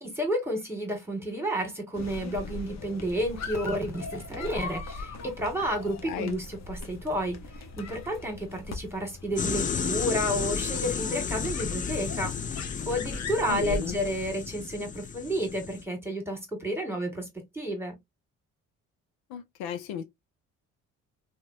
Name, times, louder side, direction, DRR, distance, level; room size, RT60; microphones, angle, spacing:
voice 1, 0.0-7.4 7.8-12.3 12.9-18.0, equal, 5° right, 1.8 m, -31 dB
sound 1, 1.9-14.3, left 3 dB, 50° left, 0.9 m, -40 dB
voice 2, 6.0-6.4 13.5-14.0 19.3-20.0, left 8 dB, 75° left, 0.6 m, -34 dB
sound 2, 9.4-15.8, left 6 dB, 25° left, 0.4 m, -33 dB
2.9 x 2.3 x 2.6 m
supercardioid pair, 55°, 36 cm